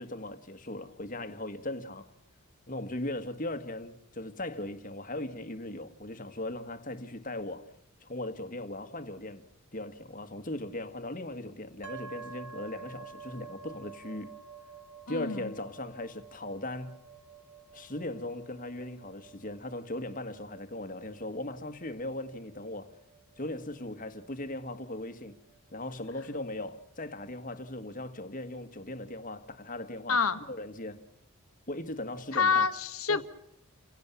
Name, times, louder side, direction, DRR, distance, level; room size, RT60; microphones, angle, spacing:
voice 1, 0.0-2.1 2.7-7.7 8.0-9.4 9.7-14.4 15.1-17.0 17.7-23.0 23.4-25.4 25.7-31.0 31.7-32.7 33.1-33.2, left 1 dB, 35° left, 1.8 m, -38 dB
sound 1, 11.8-25.5, right 6 dB, 55° right, 3.5 m, -50 dB
voice 2, 15.1-15.5 30.1-30.4 32.3-33.2, left 5 dB, 70° left, 1.7 m, -27 dB
29.5 x 17.5 x 7.1 m
head